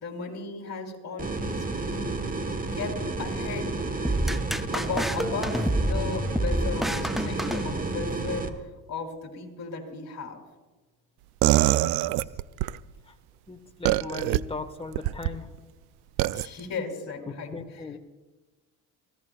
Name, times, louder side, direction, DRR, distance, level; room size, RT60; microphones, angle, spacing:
voice 1, 0.0-2.2 2.7-3.7 4.7-8.5 8.9-10.4 16.3-17.8, left 4 dB, 40° left, 2 dB, 3.4 m, -35 dB
sound 1, 1.2-8.5, right 3 dB, 20° right, 1.4 m, -31 dB
sound 2, 4.0-8.2, right 1 dB, ahead, 0.5 m, -29 dB
sound 3, 11.4-12.8 13.8-14.4 14.9-15.3 16.2-16.5, right 17 dB, 80° right, 0.5 m, -23 dB
voice 2, 11.5-12.0 13.5-15.5 17.5-18.0, left 3 dB, 15° left, 6 dB, 1.6 m, -38 dB
25.0 x 15.5 x 2.4 m, 1.2 s
supercardioid pair, 85°, 39 cm